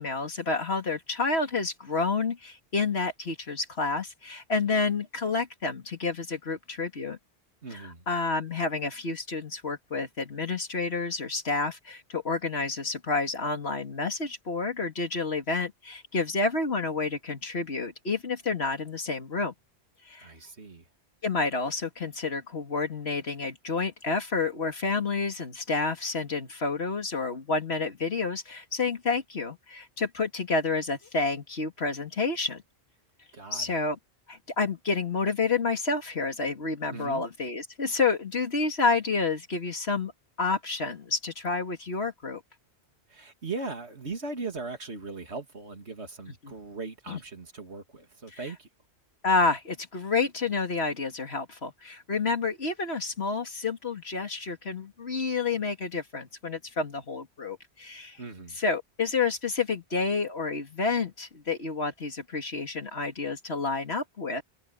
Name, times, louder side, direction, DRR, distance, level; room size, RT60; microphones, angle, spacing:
voice 1, 0.0-7.2 7.7-7.8 8.1-19.5 20.0-20.3 21.2-32.6 33.5-34.0 34.3-40.1 40.4-42.4 46.4-46.5 47.1-47.2 49.2-58.2 58.6-64.4, left 4 dB, 70° left, 2.6 m, -29 dB
voice 2, 7.6-8.0 20.2-20.9 33.3-33.8 36.9-37.2 43.1-48.7 58.2-58.6, right 3 dB, 85° right, 2.7 m, -39 dB
omnidirectional pair, 1.1 m